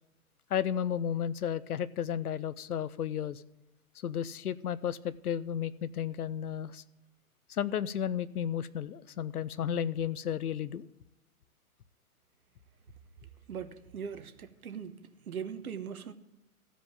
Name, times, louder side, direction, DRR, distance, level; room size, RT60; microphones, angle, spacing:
voice 1, 0.5-3.4 4.0-6.8 7.5-10.9, left 9 dB, 90° left, 0.6 m, -33 dB
voice 2, 13.5-15.0 15.3-16.1, right 7 dB, 80° right, 1.2 m, -40 dB
14.5 x 5.2 x 8.5 m
hypercardioid pair, 130°, 43 cm